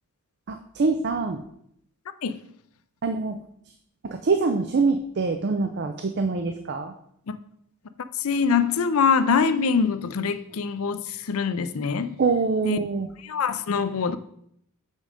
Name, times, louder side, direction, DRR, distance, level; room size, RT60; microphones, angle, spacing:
voice 1, 0.5-1.4 3.0-3.4 4.0-6.9 12.2-13.1, right 4 dB, 50° right, 0.4 m, -24 dB
voice 2, 8.2-12.2 12.6-12.8 13.2-14.2, left 5 dB, 70° left, 0.5 m, -24 dB
6.3 x 5.3 x 5.0 m
head